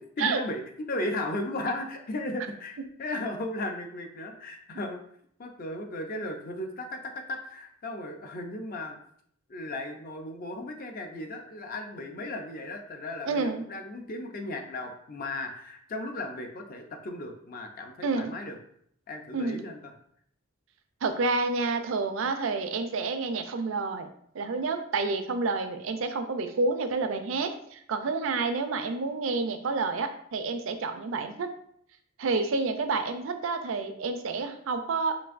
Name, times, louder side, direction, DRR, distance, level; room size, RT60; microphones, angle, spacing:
voice 1, 0.2-5.0 5.4-9.0 9.5-18.6 19.1-19.9, left 1 dB, 45° left, 4 dB, 0.5 m, -36 dB
voice 2, 13.3-13.6 18.0-18.3 19.3-19.6 21.0-24.1 24.3-31.5 32.2-35.2, right 3 dB, 70° right, 8 dB, 0.4 m, -29 dB
6.0 x 2.6 x 2.5 m, 0.68 s
head